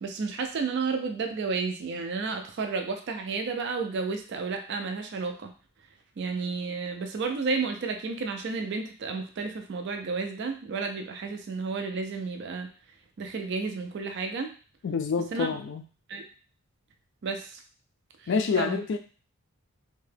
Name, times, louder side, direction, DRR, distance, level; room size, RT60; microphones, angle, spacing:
voice 1, 0.0-5.5 6.2-12.7 13.2-14.5 15.3-15.5 16.1-16.2 17.2-17.6 18.6-18.8, right 4 dB, 50° right, 5 dB, 0.4 m, -31 dB
voice 2, 14.8-15.8 18.3-19.0, left 5 dB, 55° left, 7 dB, 0.3 m, -27 dB
2.7 x 2.2 x 3.2 m, 0.37 s
head